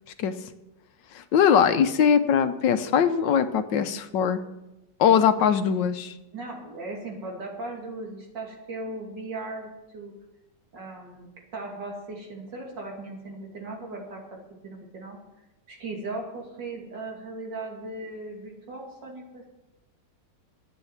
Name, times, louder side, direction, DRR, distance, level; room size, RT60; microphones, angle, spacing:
voice 1, 1.1-4.4 5.0-6.1, left 7 dB, 85° left, 10 dB, 1.5 m, -21 dB
voice 2, 6.3-10.1 10.7-11.3 11.5-14.2 14.6-15.2 15.7-19.4, right 2 dB, 80° right, 0 dB, 3.2 m, -37 dB
11.5 x 8.7 x 7.2 m, 0.96 s
omnidirectional pair, 1.9 m